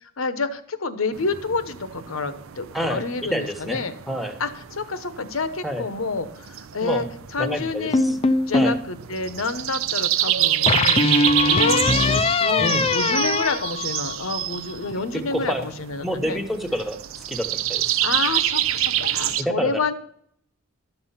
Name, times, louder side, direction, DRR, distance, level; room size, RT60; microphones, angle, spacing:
voice 1, 0.2-3.9 4.4-7.1 7.3-8.2 8.5-11.0 11.4-16.4 18.0-19.9, left 3 dB, 75° left, 12 dB, 1.0 m, -28 dB
sound 1, 1.1-19.4, right 12 dB, 70° right, 0.5 m, -27 dB
voice 2, 2.7-3.8 4.1-4.4 5.6-5.8 6.8-7.0 7.4-8.2 8.5-8.8 12.6-12.9 15.3-15.7 16.0-17.0 17.3-18.0 19.4-19.8, equal, ahead, 7 dB, 1.1 m, -28 dB
sound 2, 7.9-8.8 10.7-14.4, left 3 dB, 30° left, 0.4 m, -21 dB
12.5 x 7.0 x 5.6 m, 0.69 s
head